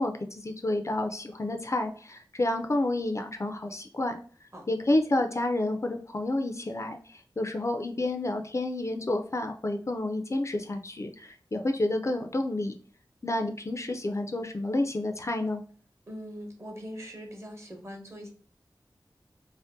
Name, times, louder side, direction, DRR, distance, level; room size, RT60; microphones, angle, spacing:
voice 1, 0.0-4.2 4.7-12.7 13.2-15.6, left 2 dB, 40° left, 5 dB, 0.3 m, -29 dB
voice 2, 16.1-18.3, equal, 35° right, 2 dB, 0.8 m, -41 dB
2.6 x 2.1 x 3.5 m, 0.43 s
wide cardioid pair, 65°, 8 cm